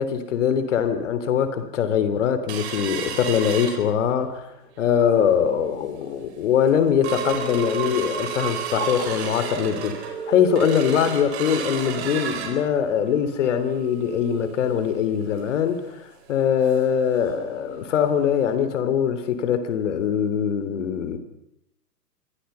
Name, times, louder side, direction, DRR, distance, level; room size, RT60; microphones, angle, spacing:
voice 1, 0.0-4.5 4.8-21.2, left 8 dB, 45° left, 11 dB, 3.3 m, -22 dB
sound 1, 2.5-4.4 4.8-4.9 5.2-5.5 6.0-6.1 6.5-17.0 17.3-17.4 17.8-18.0 18.5-18.6, right 7 dB, 40° right, 4.4 m, -32 dB
28.5 x 24.5 x 5.7 m, 0.78 s
figure-of-eight pair, 120°, 49 cm